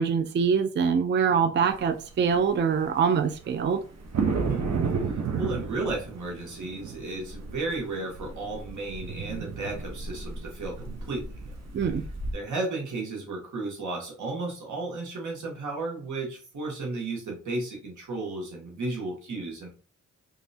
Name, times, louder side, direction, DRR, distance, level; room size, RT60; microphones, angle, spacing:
voice 1, 0.0-3.8 11.7-12.0, right 6 dB, 40° right, 9 dB, 0.4 m, -24 dB
sound 1, 1.7-1.8 2.1-12.3, right 4 dB, 60° right, 0.9 m, -33 dB
voice 2, 4.4-4.7 5.1-11.5 12.3-19.7, right 2 dB, 80° right, 0 dB, 1.3 m, -34 dB
3.2 x 2.7 x 2.7 m, 0.37 s
cardioid pair, 55°, 29 cm